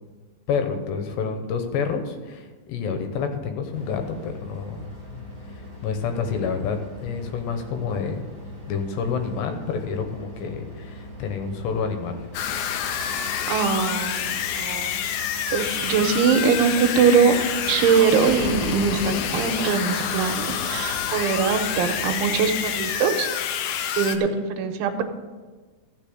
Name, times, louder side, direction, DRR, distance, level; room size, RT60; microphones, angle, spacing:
voice 1, 0.5-5.2 5.8-8.2 8.7-12.2, left 5 dB, 75° left, 6 dB, 2.9 m, -28 dB
sound 1, 3.7-22.8, left 1 dB, 40° left, 0.5 m, -42 dB
sound 2, 12.3-24.2, left 8 dB, 90° left, 2.0 m, -28 dB
voice 2, 13.5-15.0 15.5-17.4 17.7-23.3 24.0-25.0, right 6 dB, 85° right, 5 dB, 3.4 m, -22 dB
14.0 x 6.4 x 7.8 m, 1.3 s
omnidirectional pair, 5.4 m